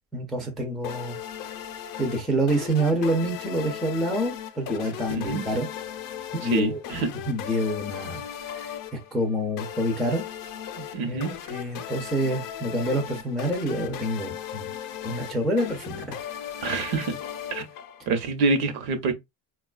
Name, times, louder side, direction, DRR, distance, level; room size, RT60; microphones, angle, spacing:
voice 1, 0.1-1.2 2.0-5.7 6.3-10.2 10.8-14.7 15.0-16.2, right 1 dB, ahead, 0.3 m, -27 dB
sound 1, 0.8-18.3, left 10 dB, 50° left, 0.5 m, -37 dB
voice 2, 5.1-5.4 6.4-7.1 10.9-11.3 16.6-17.1 17.5-17.7 18.1-19.1, right 3 dB, 60° right, 0.8 m, -26 dB
4.2 x 2.3 x 2.3 m
cardioid pair, 150°, 43 cm